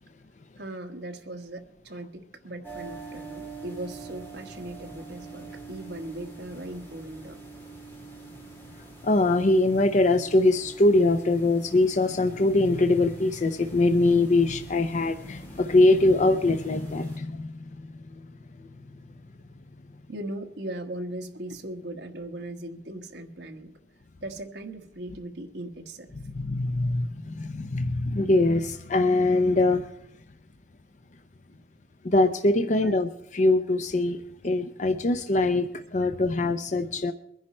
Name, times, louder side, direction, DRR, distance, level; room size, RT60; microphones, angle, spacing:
voice 1, 0.6-7.4 20.1-23.7 24.2-26.1 32.7-32.9, right 1 dB, 65° right, 4 dB, 1.5 m, -38 dB
sound 1, 2.6-17.2, right 3 dB, 10° left, 3.1 m, -45 dB
voice 2, 9.0-17.5 26.4-29.9 32.0-34.2 34.4-37.1, left 2 dB, 40° left, 8 dB, 0.6 m, -22 dB
22.5 x 10.5 x 4.3 m, 0.79 s
head